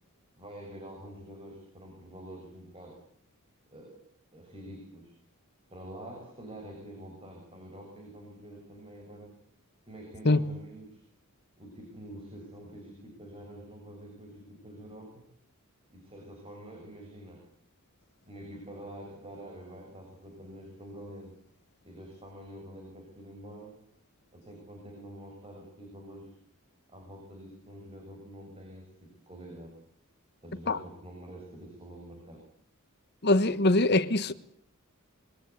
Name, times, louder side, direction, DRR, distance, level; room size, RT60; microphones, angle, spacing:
voice 1, 0.4-3.0 3.7-4.0 4.3-5.1 5.7-9.3 9.9-11.0 11.6-15.2 15.9-17.4 18.3-21.4 21.8-23.7 24.3-26.3 26.9-29.7 30.4-32.4, right 1 dB, 25° right, 6.6 m, -47 dB
voice 2, 33.2-34.3, left 2 dB, 50° left, 1.3 m, -23 dB
26.0 x 23.0 x 8.4 m
head